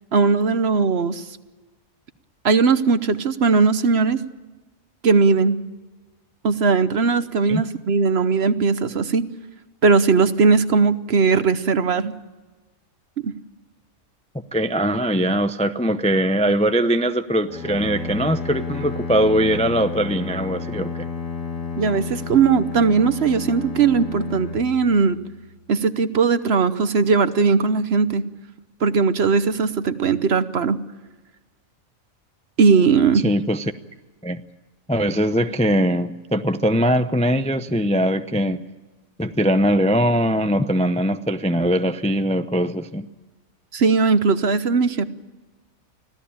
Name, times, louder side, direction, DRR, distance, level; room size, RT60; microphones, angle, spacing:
voice 1, 0.1-1.2 2.4-4.2 5.0-5.6 6.4-9.3 9.8-12.1 13.2-13.3 21.8-25.2 25.7-28.2 28.8-30.8 32.6-33.2 43.7-45.1, right 5 dB, 55° right, 13 dB, 1.1 m, -18 dB
voice 2, 14.5-20.9 33.2-33.6 34.2-34.4 34.9-38.6 39.2-43.1, equal, 10° left, 9 dB, 0.5 m, -21 dB
Bowed string instrument, 17.5-25.4, left 5 dB, 65° left, 2.9 m, -32 dB
25.5 x 16.5 x 8.6 m, 1.2 s
omnidirectional pair, 1.4 m